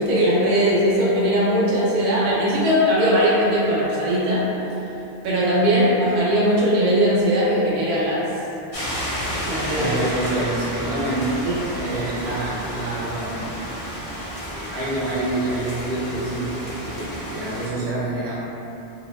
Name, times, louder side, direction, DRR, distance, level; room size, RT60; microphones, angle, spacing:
voice 1, 0.0-4.5 5.2-8.2 9.5-9.9, equal, 55° right, -7 dB, 0.6 m, -19 dB
sound 1, 8.7-17.7, equal, 45° left, 0.5 m, -31 dB
voice 2, 9.7-11.5 11.8-13.7 14.5-18.4, right 2 dB, 75° right, -8 dB, 1.0 m, -27 dB
2.8 x 2.0 x 3.1 m, 2.9 s
omnidirectional pair, 1.1 m